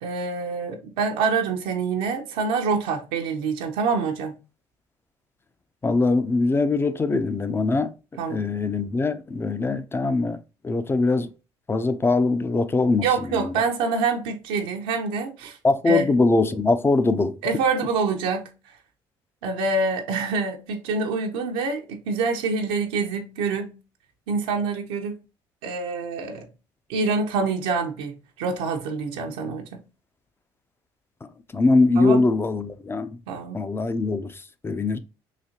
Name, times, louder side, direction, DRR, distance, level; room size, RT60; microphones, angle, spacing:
voice 1, 0.0-4.4 8.2-8.4 13.0-15.6 15.9-16.0 17.4-18.8 19.4-23.8 24.3-25.2 25.6-26.5 26.9-28.1 28.4-29.8 32.0-32.2 33.3-33.6, right 4 dB, 90° right, 0.7 m, -26 dB
voice 2, 5.8-7.9 8.3-10.4 10.6-11.3 11.7-13.5 15.6-17.4 31.5-33.2 33.5-34.3 34.6-35.0, left 3 dB, 20° left, 0.5 m, -22 dB
4.0 x 2.7 x 2.7 m
supercardioid pair, 80°, 11 cm